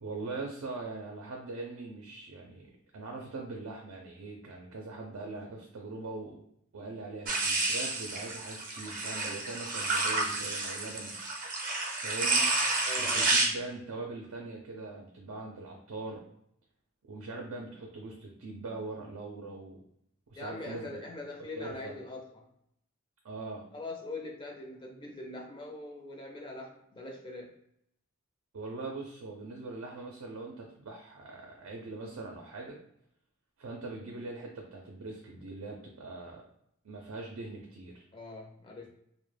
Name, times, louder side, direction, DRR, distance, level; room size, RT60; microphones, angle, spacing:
voice 1, 0.0-6.4 6.7-11.1 12.0-12.5 13.0-16.2 17.1-19.8 20.3-20.9 21.5-21.9 23.2-23.6 28.5-32.8 33.6-36.4 36.8-38.1, right 3 dB, 90° right, 0 dB, 0.5 m, -41 dB
sound 1, 7.3-13.5, right 2 dB, 40° right, 0.5 m, -30 dB
voice 2, 12.9-13.5 20.3-22.5 23.7-27.6 38.1-38.9, left 2 dB, 25° left, 1 dB, 0.4 m, -42 dB
2.2 x 2.0 x 3.2 m, 0.74 s
head